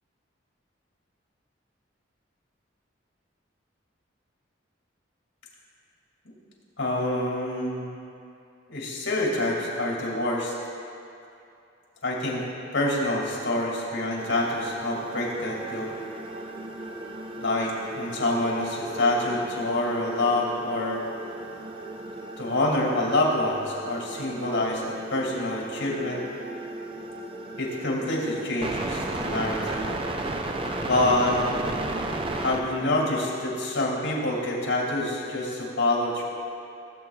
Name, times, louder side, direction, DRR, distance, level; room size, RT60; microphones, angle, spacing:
voice 1, 6.8-8.0 8.7-10.5 12.0-12.4 12.7-15.9 17.4-21.0 22.4-26.2 27.6-29.9 30.8-31.4 32.3-36.2, left 1 dB, 85° left, -2 dB, 2.4 m, -26 dB
sound 1, 14.2-33.1, right 2 dB, 30° right, 0.5 m, -35 dB
17.0 x 7.9 x 2.4 m, 2.7 s
head